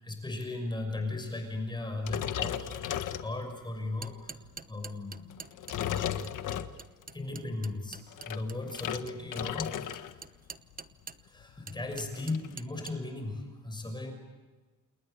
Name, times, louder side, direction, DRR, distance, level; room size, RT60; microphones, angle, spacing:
voice 1, 0.0-5.3 7.1-10.2 11.2-14.1, left 2 dB, 15° left, 4 dB, 6.2 m, -37 dB
sound 1, 2.0-3.8 4.3-4.5 5.3-7.1 7.9-10.2 10.5-10.8 11.1-11.2 11.4-12.5, left 10 dB, 75° left, 1.5 m, -35 dB
sound 2, 3.8-11.3 11.7-13.0, right 5 dB, 30° right, 0.9 m, -46 dB
29.5 x 29.0 x 6.8 m, 1.3 s
cardioid pair, 145°, 31 cm